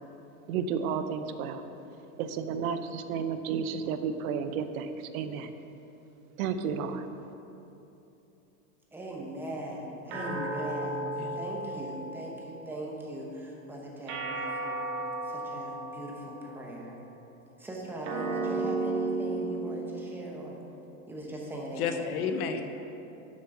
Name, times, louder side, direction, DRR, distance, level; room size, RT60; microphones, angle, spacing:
voice 1, 0.5-1.6 2.2-5.5 6.4-7.0, right 6 dB, 75° right, 9 dB, 0.7 m, -32 dB
voice 2, 8.9-11.0 11.3-17.0 17.6-20.6 21.1-22.1, right 1 dB, 5° right, -2 dB, 0.7 m, -40 dB
voice 3, 10.1-10.5 11.2-11.4 21.8-22.6, left 6 dB, 80° left, 7 dB, 0.9 m, -32 dB
sound 1, 10.1-12.7 14.1-16.6 18.0-20.7, right 3 dB, 55° right, 1.4 m, -34 dB
7.3 x 6.4 x 5.9 m, 3.0 s
supercardioid pair, 170°, 43 cm